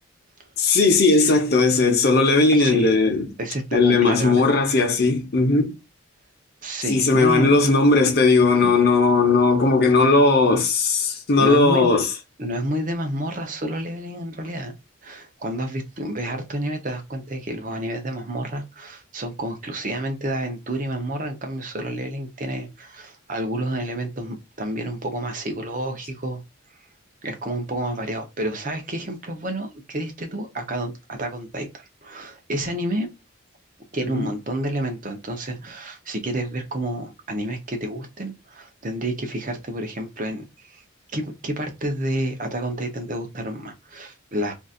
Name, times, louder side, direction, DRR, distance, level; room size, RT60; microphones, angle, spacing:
voice 1, 0.6-3.3 3.7-5.7 6.9-12.1 34.0-34.3, left 3 dB, 50° left, 0.8 m, -18 dB
voice 2, 2.5-2.9 3.4-4.5 6.6-7.5 8.6-8.7 11.1-12.0 12.4-14.7 15.0-26.4 27.2-33.1 33.9-40.8 41.1-44.5, right 1 dB, 40° right, 0.7 m, -29 dB
3.8 x 2.7 x 2.4 m
head